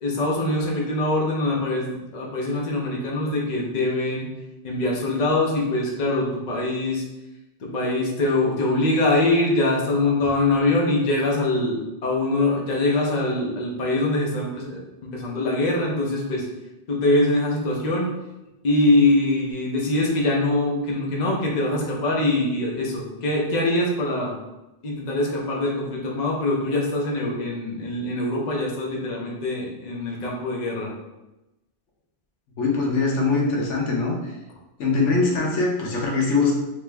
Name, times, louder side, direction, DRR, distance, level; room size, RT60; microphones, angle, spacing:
voice 1, 0.0-4.3 4.6-7.0 7.6-16.5 16.9-18.1 18.6-24.3 24.8-30.9, left 2 dB, 45° left, -2 dB, 0.8 m, -23 dB
voice 2, 32.6-34.3 34.8-36.5, left 3 dB, 80° left, -2 dB, 1.2 m, -22 dB
3.2 x 3.0 x 3.4 m, 0.97 s
omnidirectional pair, 1.2 m